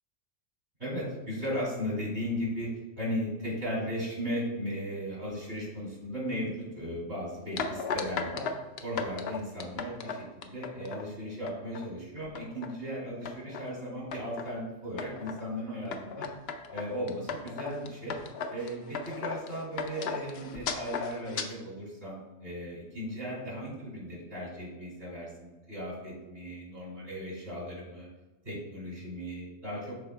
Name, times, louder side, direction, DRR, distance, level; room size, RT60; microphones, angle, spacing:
voice 1, 0.8-2.7 3.0-8.4 8.8-16.2 16.7-18.2 18.5-28.1 28.4-29.9, equal, 65° right, -5 dB, 2.7 m, -36 dB
sound 1, 7.6-11.0 11.5-11.9 12.2-12.7 13.3-13.7 14.1-14.5 15.0-15.4 15.9-21.5, left 5 dB, 65° left, 0.8 m, -36 dB
12.0 x 4.1 x 2.2 m, 1.1 s
omnidirectional pair, 1.2 m